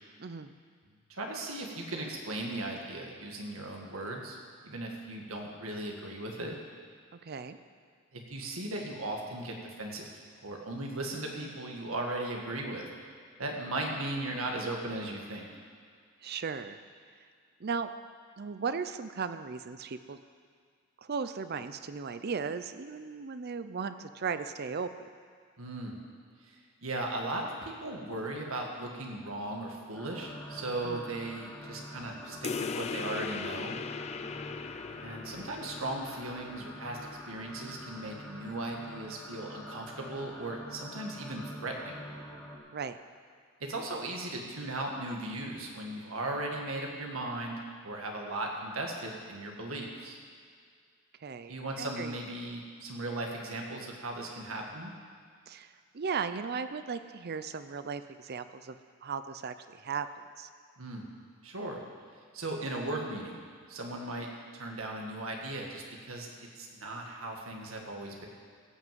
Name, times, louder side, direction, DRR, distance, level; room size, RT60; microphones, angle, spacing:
voice 1, 0.2-0.5 7.1-7.6 16.2-16.8 17.6-17.9 18.4-20.2 21.0-24.9 30.8-31.0 42.7-43.0 51.2-52.2 55.5-58.8 59.0-60.1 60.4-60.5, right 5 dB, 50° right, 11 dB, 0.6 m, -36 dB
voice 2, 1.1-4.4 4.6-6.5 8.1-10.1 10.4-12.9 13.4-15.5 25.6-26.0 26.4-33.8 35.0-42.0 43.7-47.6 47.8-50.2 51.5-54.9 60.8-61.0 61.4-61.8 62.3-63.4 63.7-64.3 64.5-68.3, right 2 dB, 85° right, 1 dB, 1.9 m, -37 dB
sound 1, 29.9-42.6, equal, 10° left, 1.8 m, -46 dB
sound 2, 32.4-37.5, left 5 dB, 30° left, 0.4 m, -39 dB
16.5 x 6.1 x 7.6 m, 2.1 s
head